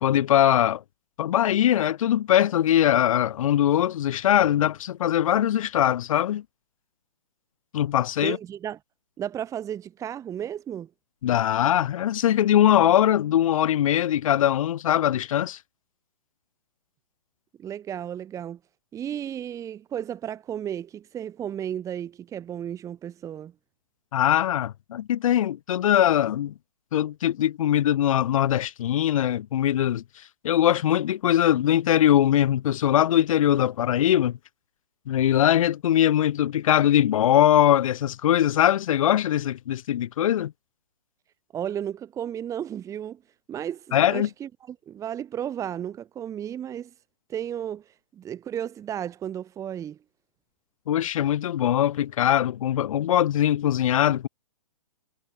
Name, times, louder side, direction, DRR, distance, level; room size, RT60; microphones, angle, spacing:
voice 1, 0.0-0.8 1.2-6.4 7.7-8.4 11.2-15.6 24.1-26.5 26.9-30.0 30.4-34.4 35.1-40.5 43.9-44.3 50.9-54.3, left 11 dB, 55° left, 2.1 m, -21 dB
voice 2, 8.2-8.8 9.2-10.9 17.6-18.6 18.9-23.5 41.5-43.2 43.5-46.9 47.3-50.0, right 10 dB, 15° right, 2.1 m, -33 dB
hypercardioid pair, 140°, 20 cm